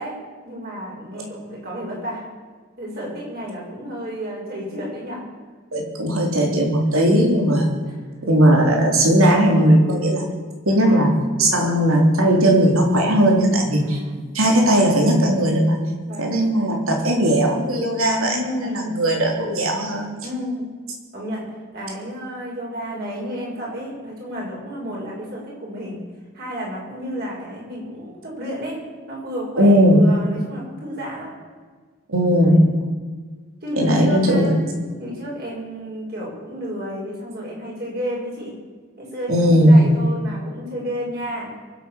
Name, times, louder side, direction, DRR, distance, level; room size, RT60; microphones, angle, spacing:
voice 1, 0.0-2.3 2.8-5.2 6.9-7.0 7.8-7.9 10.7-11.0 13.8-14.1 16.1-16.4 18.2-19.0 20.2-20.7 21.1-26.0 26.3-31.3 32.4-32.7 33.6-34.6 35.0-38.6 39.0-41.5, equal, 45° right, -4 dB, 6.0 m, -31 dB
voice 2, 5.7-7.8 8.2-10.3 10.7-14.0 14.3-15.8 16.2-18.4 18.7-20.2 29.6-30.0 32.1-32.8 33.8-34.5 39.3-40.0, equal, 80° right, 1 dB, 3.8 m, -17 dB
23.0 x 8.4 x 7.3 m, 1.5 s
head